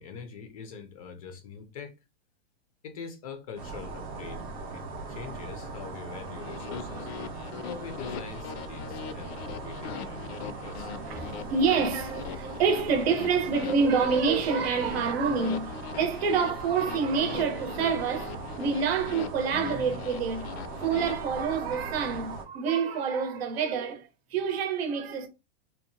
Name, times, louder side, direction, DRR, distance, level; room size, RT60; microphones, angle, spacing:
voice 1, 0.0-2.0 2.8-4.5 4.7-4.8 5.1-7.1 7.6-10.9, left 6 dB, 35° left, 0.4 m, -43 dB
sound 1, 3.6-22.4, right 3 dB, 25° right, 0.5 m, -40 dB
sound 2, 6.4-21.1, left 8 dB, 90° left, 0.5 m, -41 dB
voice 2, 11.1-20.5 20.8-25.3, right 5 dB, 75° right, 0.8 m, -27 dB
2.8 x 2.1 x 2.5 m
supercardioid pair, 175°, 31 cm